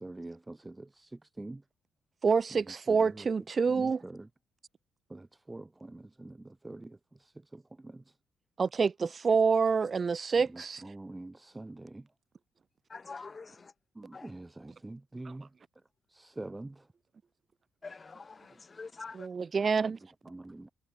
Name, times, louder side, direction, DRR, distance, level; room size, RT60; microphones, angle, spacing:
voice 1, 0.0-1.1 1.4-1.6 2.9-3.3 3.7-4.3 5.1-7.0 7.5-8.0 10.8-12.0 13.9-15.5 16.1-16.8 20.3-20.7, right 2 dB, 15° right, 5.0 m, -45 dB
voice 2, 2.2-4.0 8.6-10.8 15.2-15.3 19.1-20.0, right 5 dB, 40° right, 1.4 m, -27 dB
voice 3, 12.9-13.5 14.1-14.3 17.8-19.2, left 4 dB, 30° left, 2.7 m, -45 dB
cardioid pair, 90°, 0 cm